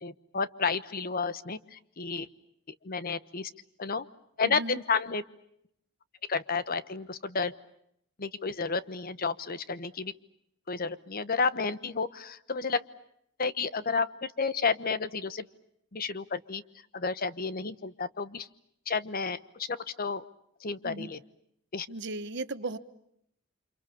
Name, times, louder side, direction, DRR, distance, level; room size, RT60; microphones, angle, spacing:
voice 1, 0.0-2.3 2.8-3.5 3.8-4.1 4.4-5.2 6.3-7.5 8.2-10.1 10.7-12.8 13.4-15.5 15.9-16.6 16.9-18.5 18.9-20.2 20.6-21.2 21.7-21.9, left 4 dB, 50° left, 14 dB, 1.1 m, -31 dB
voice 2, 4.4-4.8 20.8-21.1 21.9-22.8, right 2 dB, 60° right, 12 dB, 1.3 m, -36 dB
29.0 x 27.0 x 7.1 m, 0.73 s
head